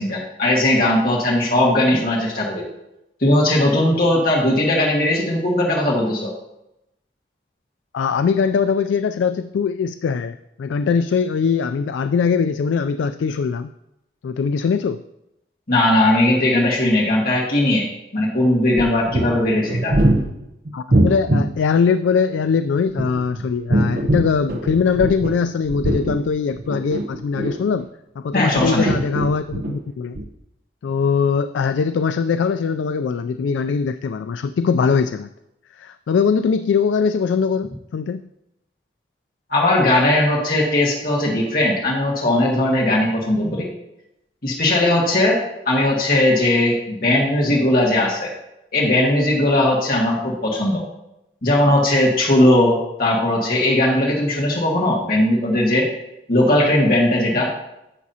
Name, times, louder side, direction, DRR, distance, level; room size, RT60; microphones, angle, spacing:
voice 1, 0.0-2.6 3.2-6.3 15.7-17.9 18.1-19.9 28.3-28.9 39.5-43.7 44.4-48.3 48.7-50.9 51.4-55.9 56.3-57.5, left 1 dB, 50° left, -3 dB, 1.7 m, -18 dB
voice 2, 7.9-13.7 14.2-15.0 20.7-27.9 28.2-30.2 30.8-35.3 35.8-38.3, left 5 dB, 90° left, 10 dB, 0.3 m, -21 dB
sound 1, 18.7-21.5 22.8-25.4 25.7-27.8 28.3-29.8 30.1-30.2, right 1 dB, 55° right, 0.8 m, -22 dB
11.0 x 7.2 x 2.8 m, 0.87 s
head